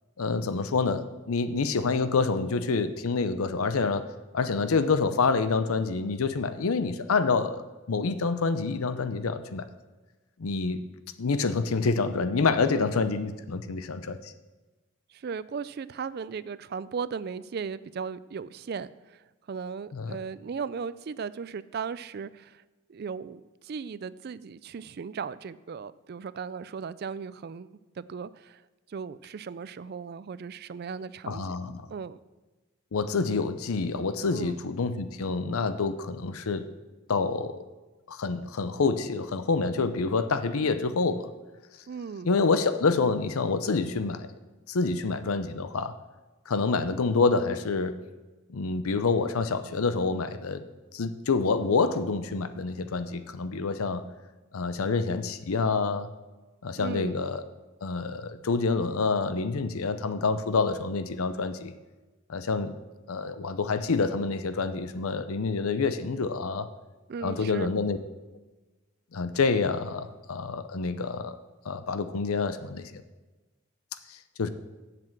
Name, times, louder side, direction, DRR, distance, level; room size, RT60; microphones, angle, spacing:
voice 1, 0.2-7.6 7.9-9.6 10.4-10.8 11.2-14.3 19.9-20.2 31.3-31.9 32.9-36.7 37.1-37.6 38.1-41.3 42.2-44.3 44.7-45.9 46.5-48.0 48.5-50.6 50.9-54.0 54.5-56.1 56.6-57.4 57.8-61.7 62.3-62.7 63.1-66.7 67.2-68.0 69.1-71.4 71.7-72.9 74.1-74.5, left 4 dB, 85° left, 12 dB, 0.6 m, -27 dB
voice 2, 15.1-19.2 19.5-22.6 22.9-28.6 28.9-31.5 31.9-32.2 34.3-34.6 41.9-42.3 56.8-57.1 67.1-67.7, right 6 dB, 45° right, 17 dB, 0.3 m, -37 dB
7.8 x 7.6 x 7.4 m, 1.2 s
head